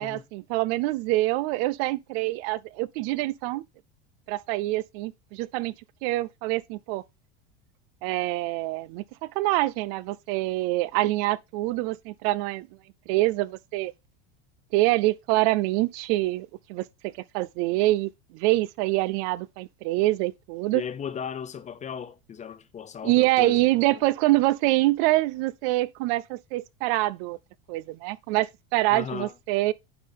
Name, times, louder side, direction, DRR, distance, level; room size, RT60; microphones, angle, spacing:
voice 1, 0.0-3.6 4.3-5.7 6.0-7.0 8.0-12.7 13.1-13.9 14.7-20.8 23.0-27.4 27.7-29.7, right 18 dB, 60° right, 0.5 m, -25 dB
voice 2, 20.7-23.6 28.9-29.3, left 7 dB, 20° left, 0.5 m, -36 dB
9.6 x 3.8 x 3.5 m
supercardioid pair, 125°, 34 cm